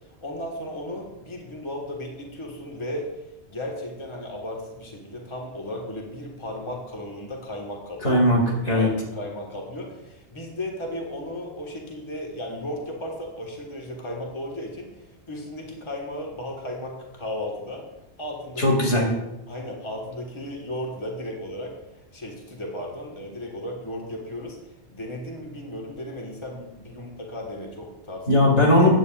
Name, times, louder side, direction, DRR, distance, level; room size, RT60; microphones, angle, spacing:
voice 1, 0.2-3.1 3.5-8.2 8.7-17.8 18.2-18.7 19.5-21.7 22.1-24.6 24.9-28.5, left 1 dB, 25° left, -1 dB, 1.6 m, -35 dB
voice 2, 8.0-8.9 18.6-19.1 28.3-28.9, left 1 dB, 85° left, -1 dB, 2.7 m, -18 dB
15.0 x 9.0 x 2.5 m, 0.95 s
omnidirectional pair, 1.2 m